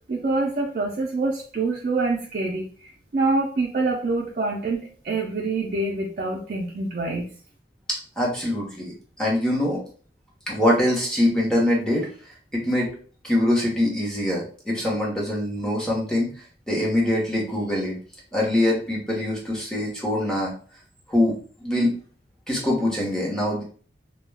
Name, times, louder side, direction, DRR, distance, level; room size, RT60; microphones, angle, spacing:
voice 1, 0.1-7.3, right 3 dB, 50° right, -1 dB, 0.4 m, -26 dB
voice 2, 7.9-9.8 10.5-12.1 12.5-12.9 13.2-18.0 18.3-20.5 21.1-21.9 22.5-23.6, left 1 dB, 5° left, -4 dB, 0.8 m, -24 dB
2.2 x 2.1 x 3.3 m, 0.41 s
head